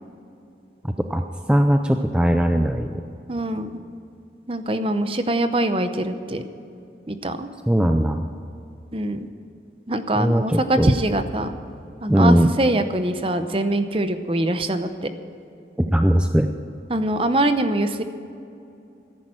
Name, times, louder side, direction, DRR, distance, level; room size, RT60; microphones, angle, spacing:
voice 1, 0.8-1.2 1.5-3.0 7.7-8.3 10.2-10.9 12.1-12.5 15.8-16.5, equal, 5° right, 6 dB, 0.4 m, -19 dB
voice 2, 3.3-3.7 4.5-6.4 7.1-7.5 8.9-9.3 9.9-11.5 12.0-15.1 16.9-18.0, right 1 dB, 30° right, 9 dB, 0.8 m, -23 dB
14.0 x 10.5 x 7.6 m, 2.7 s
head